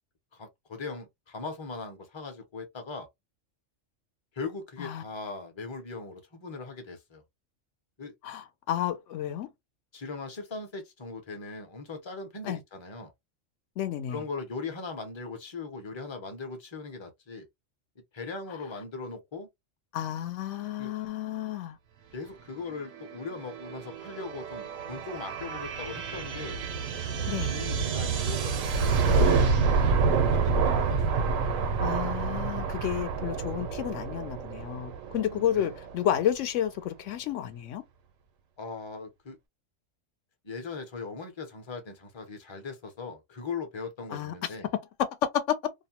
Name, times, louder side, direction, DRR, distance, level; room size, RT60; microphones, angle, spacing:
voice 1, 0.3-3.1 4.3-7.2 8.0-8.1 9.9-13.1 14.1-17.5 18.1-19.5 20.8-20.9 22.1-26.6 27.2-30.0 30.3-31.2 35.3-35.8 38.6-39.4 40.4-44.7, left 4 dB, 30° left, 0.6 m, -39 dB
voice 2, 8.2-9.5 12.4-12.6 13.8-14.2 19.9-21.8 27.3-27.5 31.8-37.8 44.1-44.3 45.3-45.6, left 11 dB, 75° left, 0.9 m, -31 dB
sound 1, 22.7-36.1, right 5 dB, 90° right, 1.1 m, -28 dB
2.6 x 2.1 x 2.8 m
omnidirectional pair, 1.3 m